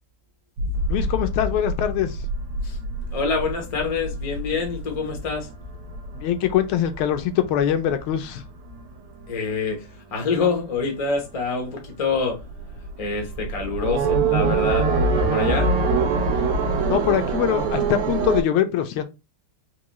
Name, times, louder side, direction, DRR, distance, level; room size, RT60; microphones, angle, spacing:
sound 1, 0.6-9.4 9.8-10.5 10.8-10.9 11.3-18.4, right 3 dB, 85° right, 1.7 m, -25 dB
voice 1, 0.9-2.2 6.1-8.4 16.9-19.0, left 10 dB, 80° left, 1.4 m, -23 dB
voice 2, 3.1-5.5 9.3-12.4 13.0-15.7, left 4 dB, 55° left, 0.4 m, -26 dB
4.6 x 2.2 x 3.0 m
omnidirectional pair, 2.4 m